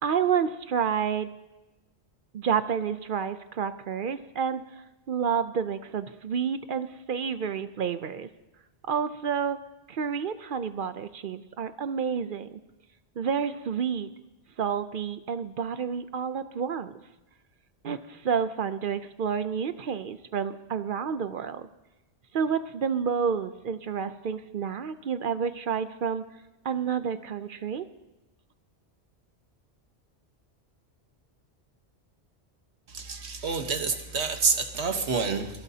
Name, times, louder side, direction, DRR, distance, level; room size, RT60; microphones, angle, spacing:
voice 1, 0.0-1.3 2.3-4.6 5.1-8.3 8.9-9.6 9.9-12.6 13.2-14.1 14.6-17.0 17.8-21.7 22.3-26.2 26.6-27.9, right 7 dB, 60° right, 12 dB, 0.7 m, -29 dB
voice 2, 32.9-35.6, right 5 dB, 80° right, 6 dB, 1.4 m, -28 dB
24.5 x 12.0 x 2.8 m, 1.0 s
omnidirectional pair, 1.1 m